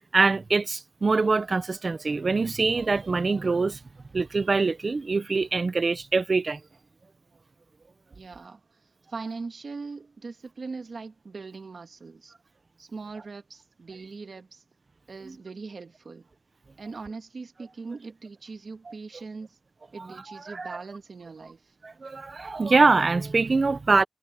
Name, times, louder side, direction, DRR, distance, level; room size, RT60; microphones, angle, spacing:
voice 1, 0.1-3.8 4.1-6.6 15.3-15.4 20.0-20.1 20.5-20.8 21.8-24.0, right 3 dB, 55° right, 0.8 m, -24 dB
voice 2, 8.1-8.6 9.1-12.3 12.8-14.6 15.1-16.3 16.8-19.6 19.9-21.7, right 4 dB, 75° right, 1.8 m, -40 dB
wide cardioid pair, 85°, 0 cm